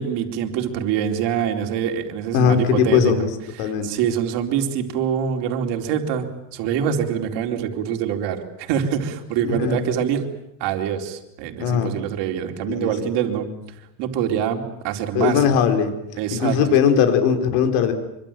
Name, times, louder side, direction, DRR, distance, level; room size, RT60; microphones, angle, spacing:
voice 1, 0.0-3.2 3.6-10.3 10.6-13.5 14.0-15.5 16.2-16.6, right 8 dB, 65° right, 4 dB, 4.3 m, -25 dB
voice 2, 2.3-3.3 3.6-3.9 9.4-9.8 11.6-12.0 12.7-12.9 15.1-15.9 16.3-17.9, left 7 dB, 80° left, 7 dB, 4.6 m, -19 dB
26.0 x 25.0 x 9.1 m, 0.85 s
cardioid pair, 130°, 43 cm